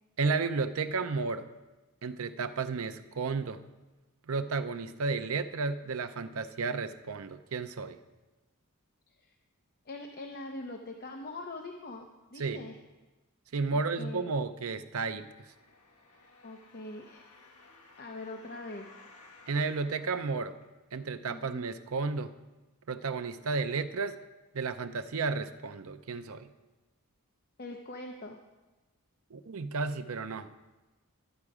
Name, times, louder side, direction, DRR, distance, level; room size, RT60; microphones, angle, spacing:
voice 1, 0.2-1.5 2.0-3.6 4.3-8.0 12.4-12.7 13.5-15.2 19.5-20.6 20.9-22.3 22.9-24.2 24.5-26.5 29.3-30.5, right 4 dB, 65° right, 10 dB, 0.6 m, -32 dB
voice 2, 9.9-12.8 13.7-14.3 16.2-17.5 18.0-19.0 21.3-21.6 27.6-28.4, left 2 dB, 45° left, 3 dB, 0.7 m, -43 dB
sound 1, 15.2-21.1 21.7-21.8, left 3 dB, 80° left, 1.3 m, -57 dB
12.0 x 8.9 x 4.8 m, 1.1 s
head